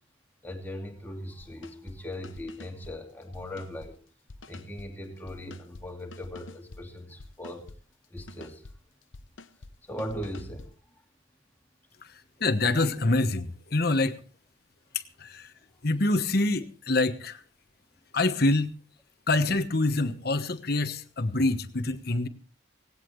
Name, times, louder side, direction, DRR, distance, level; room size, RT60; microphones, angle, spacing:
voice 1, 0.4-4.0 4.5-7.7 8.1-8.7 9.9-10.7, left 1 dB, 10° left, 2 dB, 2.6 m, -39 dB
sound 1, 1.4-2.0 2.2-2.9 3.2-3.9 4.3-4.9 5.3-5.9 6.1-6.8 7.2-7.8 8.2-8.8 9.0-9.7 10.0-10.7, left 3 dB, 80° left, 0.9 m, -47 dB
voice 2, 12.0-14.2 14.9-15.5 15.8-17.4 18.1-18.7 19.3-22.3, left 2 dB, 55° left, 9 dB, 1.2 m, -26 dB
18.5 x 17.0 x 3.2 m, 0.40 s
head